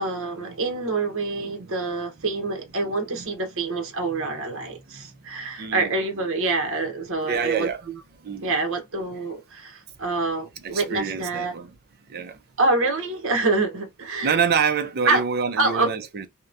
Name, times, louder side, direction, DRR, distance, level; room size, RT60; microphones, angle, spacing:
voice 1, 0.0-7.7 8.4-11.5 12.6-14.4 15.0-15.2 15.6-15.9, right 3 dB, 65° right, 0.8 m, -26 dB
voice 2, 1.4-1.7 3.2-3.3 4.9-5.9 7.2-7.8 8.2-8.5 10.6-11.7 12.1-12.4 14.2-16.3, right 6 dB, 45° right, 0.5 m, -27 dB
2.9 x 2.1 x 2.4 m
head